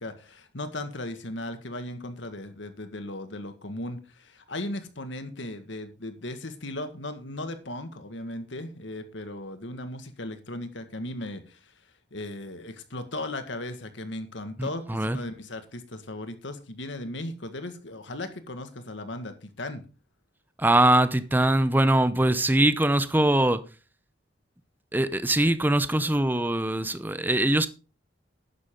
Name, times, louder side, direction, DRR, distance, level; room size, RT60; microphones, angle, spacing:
voice 1, 0.0-11.6 12.1-19.8, left 1 dB, 75° left, 1.8 m, -37 dB
voice 2, 14.6-15.2 20.6-23.6 24.9-27.7, right 1 dB, 10° right, 0.6 m, -22 dB
11.5 x 9.8 x 3.8 m
head